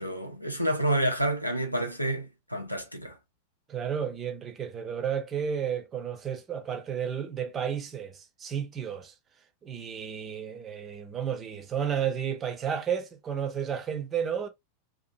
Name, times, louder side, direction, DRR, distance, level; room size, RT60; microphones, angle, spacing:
voice 1, 0.0-3.2, right 1 dB, 90° left, 0.6 m, -29 dB
voice 2, 3.7-9.1 9.6-14.5, right 8 dB, 25° right, 0.6 m, -32 dB
2.7 x 2.4 x 2.5 m
figure-of-eight pair, 90°, 0 cm